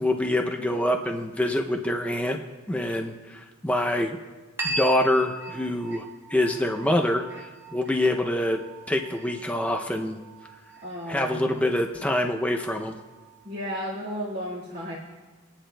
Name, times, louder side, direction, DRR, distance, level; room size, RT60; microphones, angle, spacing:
voice 1, 0.0-2.4 2.7-4.2 4.6-8.6 8.9-10.2 11.1-13.0, left 1 dB, 5° left, 2 dB, 0.4 m, -25 dB
sound 1, 4.6-13.6, right 1 dB, 10° right, 1.1 m, -39 dB
voice 2, 10.8-11.6 13.4-15.0, equal, 45° right, -8 dB, 1.8 m, -33 dB
21.0 x 10.0 x 2.2 m, 1.3 s
head